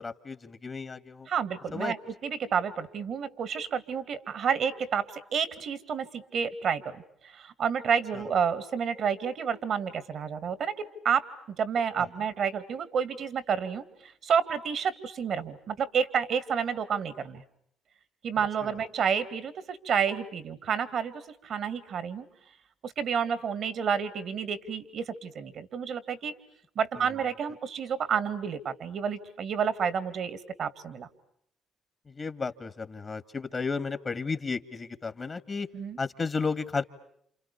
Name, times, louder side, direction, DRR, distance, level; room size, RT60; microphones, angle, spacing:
voice 1, 0.0-1.3 1.7-1.9 8.1-8.2 27.0-27.1 32.1-35.7 36.0-36.8, left 4 dB, 40° left, 12 dB, 2.0 m, -33 dB
voice 2, 1.3-2.0 2.2-7.0 7.3-17.4 18.2-21.1 21.4-22.3 22.8-26.3 26.8-31.1 35.7-36.0, right 7 dB, 65° right, 15 dB, 2.3 m, -30 dB
29.5 x 28.5 x 7.0 m, 0.69 s
hypercardioid pair, 50°, 0 cm